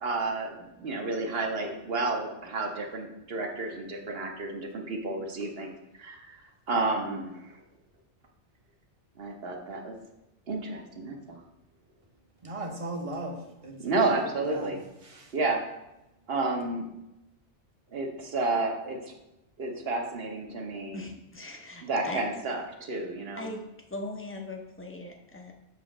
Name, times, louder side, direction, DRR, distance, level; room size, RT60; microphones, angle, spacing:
voice 1, 0.0-5.7 6.0-6.4 6.7-7.6 9.2-10.0 10.5-11.4 13.8-14.8 15.3-15.6 16.3-16.9 17.9-19.1 19.6-21.0 21.8-23.5, right 3 dB, 60° right, 2 dB, 1.2 m, -31 dB
voice 2, 12.4-15.3, right 1 dB, 30° right, 2 dB, 0.9 m, -38 dB
voice 3, 20.9-22.2 23.4-23.6 23.9-25.5, left 2 dB, 15° left, 2 dB, 0.6 m, -39 dB
7.5 x 3.1 x 6.0 m, 0.91 s
omnidirectional pair, 1.2 m